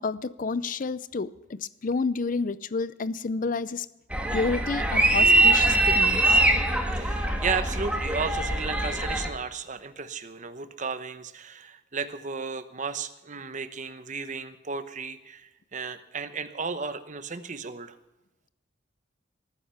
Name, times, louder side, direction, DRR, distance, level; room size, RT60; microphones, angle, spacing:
voice 1, 0.0-3.9 4.3-6.4, left 4 dB, 45° left, 17 dB, 0.5 m, -30 dB
sound 1, 4.1-9.3, right 2 dB, 5° right, 1.6 m, -23 dB
voice 2, 7.0-18.0, right 5 dB, 40° right, 11 dB, 0.9 m, -34 dB
19.5 x 9.8 x 5.8 m, 0.97 s
head